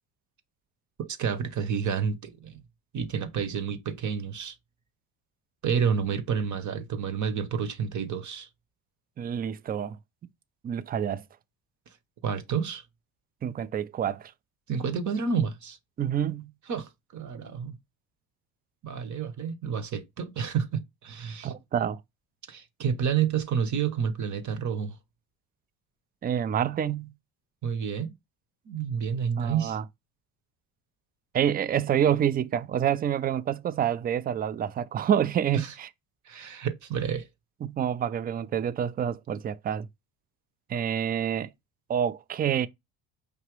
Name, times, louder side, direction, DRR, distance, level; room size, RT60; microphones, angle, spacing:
voice 1, 1.0-2.6 2.9-4.6 5.6-8.5 12.2-12.8 14.7-15.8 16.7-17.7 18.8-21.5 22.5-25.0 27.6-28.1 28.7-29.8 35.5-35.8 36.2-37.3, right 7 dB, 45° right, 0.9 m, -29 dB
voice 2, 9.2-10.0 10.6-11.2 13.4-14.3 16.0-16.5 21.4-22.0 26.2-27.1 29.4-29.8 31.3-35.9 37.6-39.9 40.7-41.5 41.9-42.7, right 9 dB, 25° right, 0.3 m, -27 dB
4.9 x 2.8 x 3.0 m
supercardioid pair, 80°, 41 cm